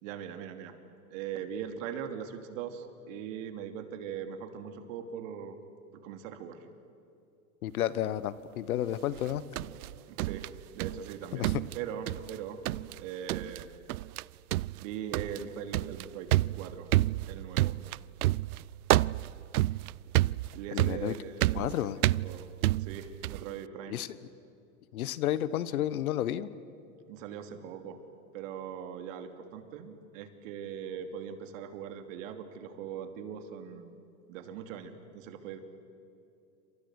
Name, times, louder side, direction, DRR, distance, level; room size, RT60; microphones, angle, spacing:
voice 1, 0.0-0.7 1.1-5.6 5.9-6.7 10.1-11.5 11.7-12.6 13.0-13.7 14.8-16.3 16.5-16.9 17.3-17.7 20.5-21.8 22.2-22.5 22.8-24.0 27.1-28.0 28.3-33.9 34.3-35.6, right 8 dB, 60° right, 7 dB, 3.0 m, -40 dB
voice 2, 7.6-9.4 11.3-11.5 20.7-21.1 21.6-22.0 23.9-24.1 24.9-26.5, left 12 dB, 70° left, 17 dB, 1.3 m, -31 dB
sound 1, 9.2-11.1 11.4-12.4 12.7-13.0 13.3-13.6 13.9-14.2 14.5-23.5, right 17 dB, 75° right, 0.5 m, -29 dB
28.5 x 26.5 x 6.5 m, 2.7 s
hypercardioid pair, 110°, 44 cm